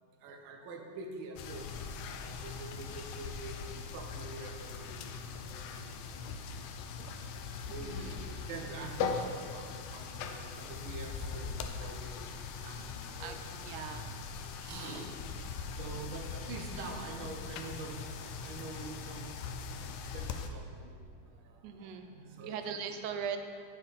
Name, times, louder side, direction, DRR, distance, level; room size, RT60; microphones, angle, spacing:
voice 1, 0.2-1.7 2.2-5.8 7.7-13.9 14.6-15.1 15.5-19.5 19.8-22.6, right 3 dB, 65° right, 2 dB, 1.3 m, -46 dB
sound 1, 1.4-20.5, left 5 dB, 80° left, 1.7 m, -41 dB
voice 2, 7.8-8.2 13.2-13.4 13.6-14.1 21.6-23.4, right 7 dB, 90° right, 7 dB, 2.1 m, -40 dB
8.8 x 7.5 x 4.1 m, 2.2 s
omnidirectional pair, 3.4 m